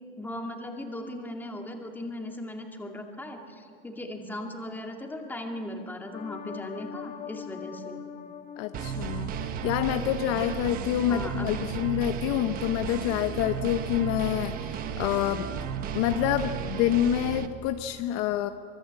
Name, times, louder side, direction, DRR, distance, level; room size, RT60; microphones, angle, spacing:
voice 1, 0.2-8.0 11.1-11.6, left 1 dB, 5° left, 3 dB, 2.3 m, -38 dB
sound 1, 6.1-10.4 10.7-10.8, left 7 dB, 25° left, 2.2 m, -43 dB
voice 2, 8.6-15.5 15.9-18.5, left 11 dB, 45° left, 8 dB, 1.0 m, -27 dB
sound 2, 8.7-17.5, right 7 dB, 30° right, 1.3 m, -34 dB
25.0 x 23.0 x 8.3 m, 2.2 s
supercardioid pair, 160°, 30 cm